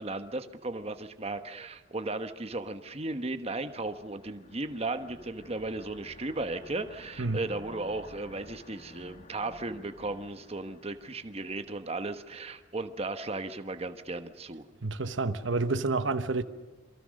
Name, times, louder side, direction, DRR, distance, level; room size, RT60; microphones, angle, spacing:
voice 1, 0.0-14.6, right 2 dB, 30° right, 1.2 m, -36 dB
sound 1, 3.3-12.0, left 2 dB, 40° left, 1.7 m, -53 dB
voice 2, 14.8-16.4, right 3 dB, 75° right, 1.1 m, -29 dB
27.5 x 23.5 x 6.5 m
head